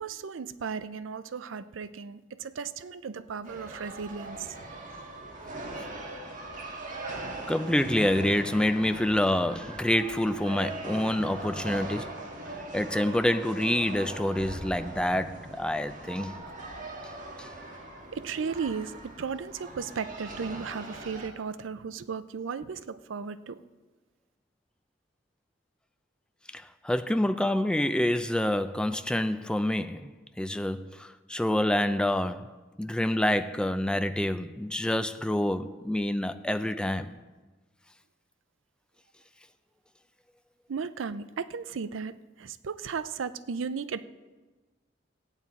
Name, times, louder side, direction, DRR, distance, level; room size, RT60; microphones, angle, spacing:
voice 1, 0.0-4.6 18.1-23.6 40.7-44.0, right 5 dB, 90° right, 0.5 m, -35 dB
sound 1, 3.5-21.3, right 2 dB, 45° right, 1.6 m, -40 dB
voice 2, 7.5-12.2 12.7-16.3 17.4-17.5 26.5-30.1 30.4-32.5 32.8-37.2, left 1 dB, 5° left, 0.4 m, -27 dB
16.0 x 9.0 x 4.1 m
head